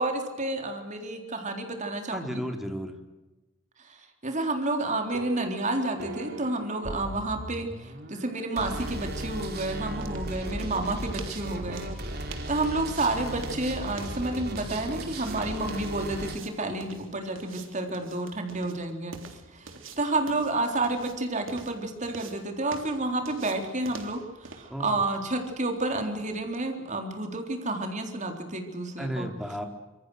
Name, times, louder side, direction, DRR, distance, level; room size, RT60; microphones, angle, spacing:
voice 1, 0.0-2.4 3.9-11.8 12.2-19.2 19.5-29.3, right 2 dB, 40° right, 4 dB, 3.9 m, -30 dB
voice 2, 2.1-2.9 24.7-25.1 29.0-29.7, equal, ahead, 4 dB, 3.4 m, -33 dB
sound 1, 4.9-16.4, right 1 dB, 55° right, 3.6 m, -37 dB
sound 2, 9.5-26.7, right 4 dB, 75° right, 3.4 m, -48 dB
26.0 x 25.0 x 6.5 m, 1.1 s
head